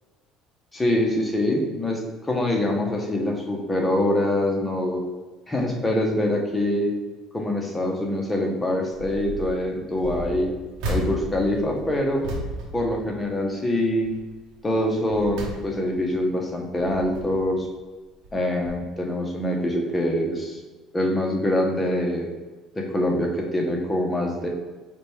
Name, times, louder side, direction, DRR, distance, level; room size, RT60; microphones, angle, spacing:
voice 1, 0.7-5.0 5.5-6.9 7.3-10.5 10.9-12.3 12.7-14.1 14.6-17.7 18.3-20.6 20.9-22.3 22.7-24.5, left 1 dB, 15° left, 0 dB, 0.8 m, -24 dB
sound 1, 8.9-9.5 10.0-13.7 14.0-14.3 14.8-16.1 16.6-17.6 18.2-18.4 18.6-18.7, right 1 dB, 75° right, 0.9 m, -34 dB
4.9 x 2.3 x 3.1 m, 1.3 s
supercardioid pair, 95°, 0 cm